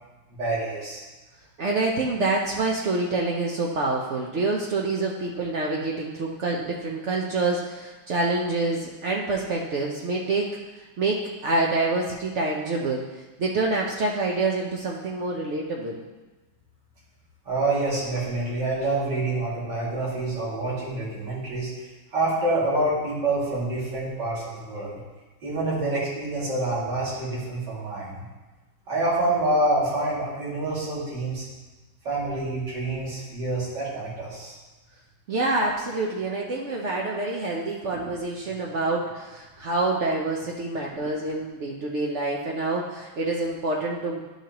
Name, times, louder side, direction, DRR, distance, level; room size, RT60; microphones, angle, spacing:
voice 1, 0.3-1.0 17.5-21.7 22.1-25.0 25.4-28.2 28.9-31.5 32.0-34.5, right 2 dB, 55° right, -8 dB, 3.0 m, -27 dB
voice 2, 1.6-10.5 10.8-13.0 13.4-16.0 35.3-44.2, right 2 dB, 85° right, -2 dB, 0.6 m, -27 dB
11.5 x 5.6 x 2.9 m, 1.2 s
omnidirectional pair, 2.2 m